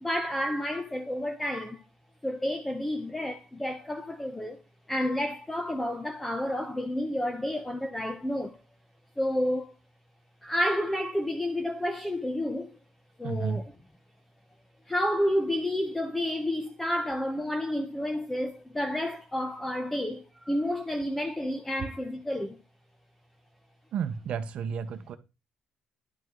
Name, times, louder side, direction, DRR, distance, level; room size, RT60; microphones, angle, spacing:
voice 1, 0.0-1.8 2.2-4.6 4.9-8.6 9.2-9.7 10.4-12.8 13.2-13.6 14.9-22.6, left 1 dB, 5° left, 0.8 m, -30 dB
voice 2, 13.2-13.6 23.9-25.2, right 6 dB, 50° right, 0.9 m, -32 dB
11.0 x 5.3 x 3.8 m
cardioid pair, 175°, 3 cm